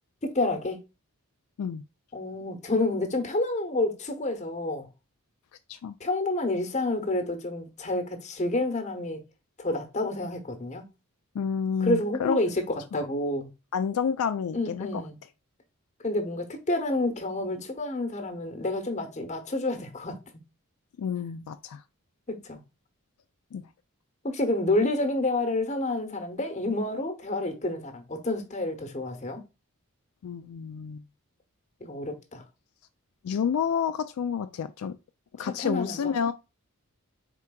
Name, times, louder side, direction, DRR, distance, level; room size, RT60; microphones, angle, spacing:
voice 1, 0.2-0.8 2.1-4.9 6.0-9.2 9.6-10.8 11.8-13.5 14.5-15.2 16.0-20.2 22.3-22.6 24.2-29.4 31.8-32.4 35.4-36.1, left 2 dB, 30° left, 0.9 m, -29 dB
voice 2, 11.3-12.4 13.7-15.0 21.0-21.8 23.5-23.6 30.2-31.0 33.2-34.9 35.4-36.3, left 7 dB, 75° left, 0.3 m, -29 dB
4.5 x 3.7 x 2.2 m
head